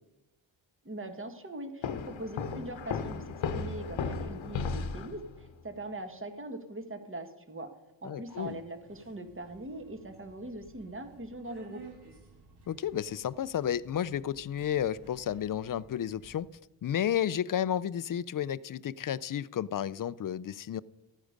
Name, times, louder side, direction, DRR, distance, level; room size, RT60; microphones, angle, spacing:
voice 1, 0.8-3.2 3.5-7.7 8.0-11.8, right 1 dB, 25° right, 7 dB, 1.5 m, -41 dB
sound 1, 1.8-5.5, left 5 dB, 75° left, 1.0 m, -35 dB
voice 2, 8.0-8.6 12.7-16.5 16.8-20.8, left 10 dB, 45° left, 19 dB, 0.4 m, -32 dB
Subway metro underground, 8.3-16.4, right 4 dB, 55° right, 2.6 m, -55 dB
14.0 x 9.6 x 5.2 m, 0.97 s
cardioid pair, 85°, 47 cm